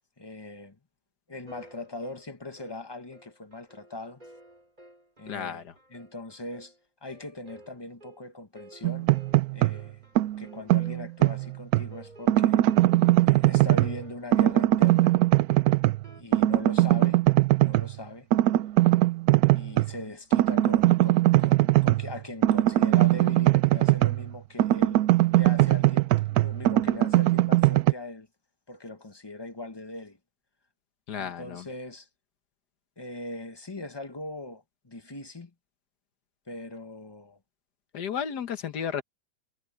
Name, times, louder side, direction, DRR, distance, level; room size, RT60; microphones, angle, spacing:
voice 1, 0.2-0.8 1.3-4.2 5.2-6.7 7.0-9.1 9.5-10.0 10.4-12.6 13.2-15.2 16.2-17.2 17.6-18.3 19.5-25.0 25.3-28.3 28.7-30.2 31.2-32.1 33.0-35.5 36.5-37.4, left 2 dB, 20° left, 0.8 m, -40 dB
sound 1, 1.5-16.2, right 1 dB, 20° right, 5.5 m, -53 dB
voice 2, 5.3-5.7 31.1-31.6 37.9-39.0, left 7 dB, 60° left, 1.8 m, -33 dB
sound 2, 8.8-9.8 10.2-11.9 12.3-14.0 14.3-16.1 16.3-17.9 18.3-19.9 20.3-24.3 24.6-27.9, right 16 dB, 75° right, 0.8 m, -21 dB
omnidirectional pair, 2.1 m